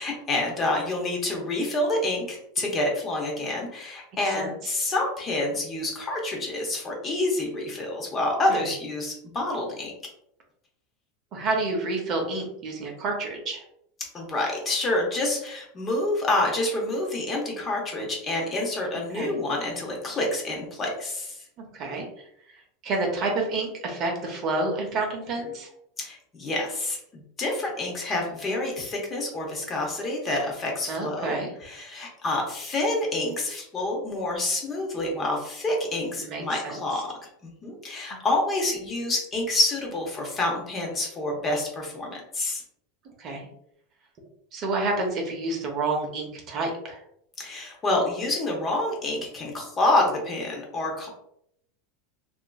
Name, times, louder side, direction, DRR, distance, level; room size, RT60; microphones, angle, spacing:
voice 1, 0.0-9.9 14.1-21.4 26.0-37.0 37.4-42.6 47.4-51.1, left 2 dB, 20° left, 0 dB, 0.7 m, -28 dB
voice 2, 4.2-4.8 8.5-8.6 11.3-13.6 19.1-19.4 21.7-22.1 22.8-25.7 30.9-31.5 36.2-36.8 43.2-43.5 44.5-47.0, right 2 dB, 35° right, 1 dB, 0.6 m, -29 dB
2.8 x 2.4 x 2.2 m, 0.73 s
supercardioid pair, 150°, 0 cm